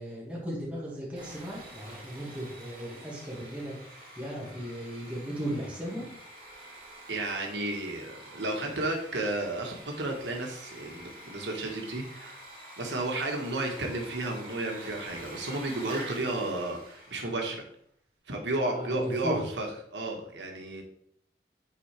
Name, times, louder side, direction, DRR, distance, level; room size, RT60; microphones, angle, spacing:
voice 1, 0.0-3.8 4.2-6.1 16.2-16.5 18.7-19.4, equal, 10° right, -5 dB, 2.0 m, -36 dB
Sawing, 1.2-17.6, right 1 dB, 30° right, 2.8 m, -47 dB
voice 2, 7.1-12.4 12.8-17.6 18.3-20.8, right 2 dB, 90° right, 1 dB, 1.3 m, -33 dB
8.5 x 4.2 x 3.3 m, 0.67 s
head